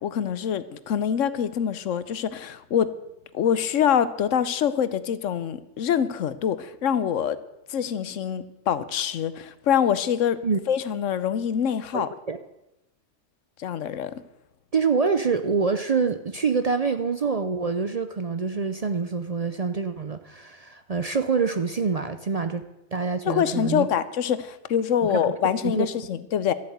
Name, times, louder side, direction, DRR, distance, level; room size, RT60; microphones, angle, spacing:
voice 1, 0.0-2.9 3.3-7.4 7.7-10.4 10.7-12.1 13.6-14.1 23.3-26.5, left 8 dB, 85° left, 15 dB, 1.1 m, -25 dB
voice 2, 11.9-12.4 14.7-22.6 22.9-23.9 25.0-25.4 25.6-25.9, right 5 dB, 45° right, 9 dB, 0.5 m, -26 dB
13.0 x 8.5 x 7.9 m, 0.92 s
omnidirectional pair, 1.3 m